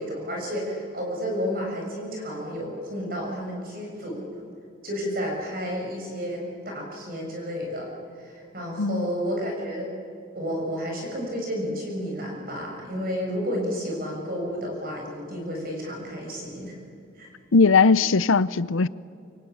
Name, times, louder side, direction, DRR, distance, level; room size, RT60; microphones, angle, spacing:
voice 1, 0.0-4.4 4.8-7.9 8.2-9.9 10.4-16.8 17.2-17.3, equal, 45° right, 6.9 m, -31 dB
voice 2, 8.8-9.1 17.5-18.9, left 4 dB, 90° left, 0.7 m, -19 dB
25.5 x 23.5 x 9.3 m
head